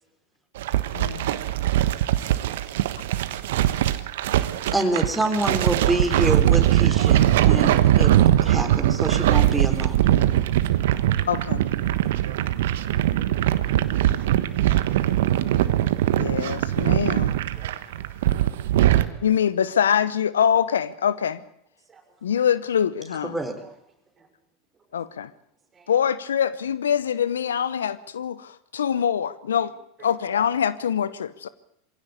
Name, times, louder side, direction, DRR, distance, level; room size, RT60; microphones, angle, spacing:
sound 1, 0.6-19.1, right 13 dB, 70° right, 1.3 m, -21 dB
voice 1, 0.9-1.3 11.3-11.6 16.2-17.4 19.2-21.4 22.2-23.3 24.9-25.3 25.9-29.7 30.0-31.5, left 8 dB, 80° left, 17 dB, 0.9 m, -24 dB
voice 2, 2.4-3.2 11.1-11.4 17.6-18.0 19.0-19.3 21.9-22.0 23.6-23.7 24.2-24.3 25.7-25.9 30.1-30.2, right 5 dB, 25° right, 4 dB, 6.1 m, -56 dB
voice 3, 4.7-10.1 23.2-23.6, right 1 dB, 5° right, 4 dB, 4.0 m, -27 dB
23.0 x 16.5 x 8.5 m, 0.69 s
hypercardioid pair, 95°, 0 cm